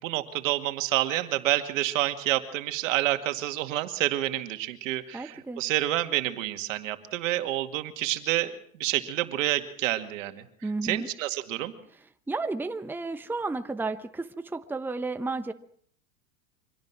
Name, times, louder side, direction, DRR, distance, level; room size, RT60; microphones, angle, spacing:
voice 1, 0.0-10.4 10.8-11.7, right 15 dB, 70° right, 7 dB, 2.2 m, -28 dB
voice 2, 5.1-5.6 10.6-11.1 12.3-15.5, right 3 dB, 5° right, 9 dB, 1.0 m, -32 dB
25.0 x 17.5 x 6.0 m, 0.62 s
hypercardioid pair, 105°, 40 cm